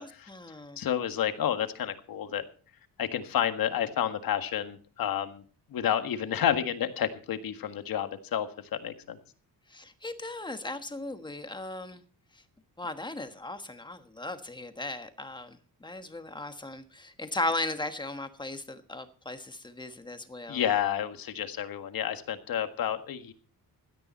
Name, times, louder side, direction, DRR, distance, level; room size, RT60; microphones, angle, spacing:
voice 1, 0.0-0.8 9.7-12.0 12.8-20.6, left 2 dB, 10° left, 8 dB, 1.3 m, -37 dB
voice 2, 0.8-2.4 3.0-5.4 5.7-8.5 8.8-9.2 20.5-23.3, left 9 dB, 70° left, 8 dB, 1.7 m, -30 dB
17.0 x 12.0 x 4.3 m, 0.40 s
cardioid pair, 150°, 37 cm